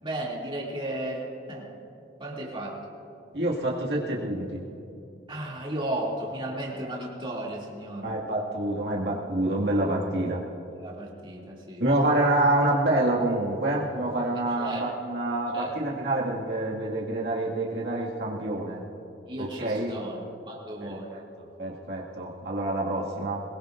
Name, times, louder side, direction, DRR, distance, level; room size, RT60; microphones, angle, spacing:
voice 1, 0.0-1.7 2.2-2.8 5.3-8.1 10.8-11.8 14.3-14.8 15.5-15.7 19.3-21.1, right 1 dB, 30° right, -4 dB, 2.7 m, -34 dB
voice 2, 3.3-4.6 6.8-6.9 8.0-10.4 11.8-18.8 19.4-20.0 20.8-21.2 21.6-23.4, right 1 dB, 70° right, -4 dB, 2.1 m, -27 dB
22.5 x 21.0 x 2.6 m, 2.8 s
head